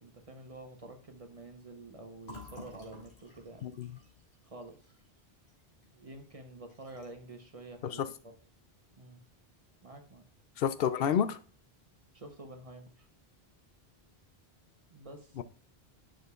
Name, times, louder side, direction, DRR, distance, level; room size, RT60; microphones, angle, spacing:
voice 1, 0.0-3.7 4.4-4.9 6.0-8.3 9.0-9.2 9.8-10.2 12.1-13.1 14.9-15.4, right 2 dB, 35° right, 1.0 m, -48 dB
Fill (with liquid), 2.2-5.9 6.2-6.4 6.7-7.3, left 2 dB, 85° left, 2.3 m, -52 dB
voice 2, 10.6-11.4 15.4-15.5, left 8 dB, 70° left, 0.7 m, -29 dB
9.6 x 6.3 x 2.4 m
omnidirectional pair, 1.0 m